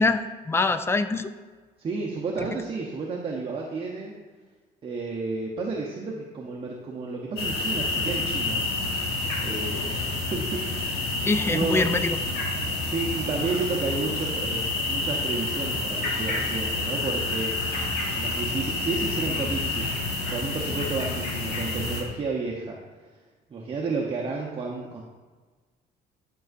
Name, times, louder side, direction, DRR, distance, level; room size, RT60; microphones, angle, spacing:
voice 1, 0.0-1.3 11.2-12.2, left 3 dB, 15° left, 11 dB, 0.4 m, -24 dB
voice 2, 1.8-4.2 4.8-8.6 9.4-10.9 11.4-11.8 12.8-19.9 20.3-22.8 23.5-25.0, right 3 dB, 35° right, -3 dB, 0.8 m, -31 dB
sound 1, 7.4-22.0, left 2 dB, 80° left, 1.6 m, -28 dB
10.5 x 5.5 x 2.5 m, 1.4 s
cardioid pair, 110°, 17 cm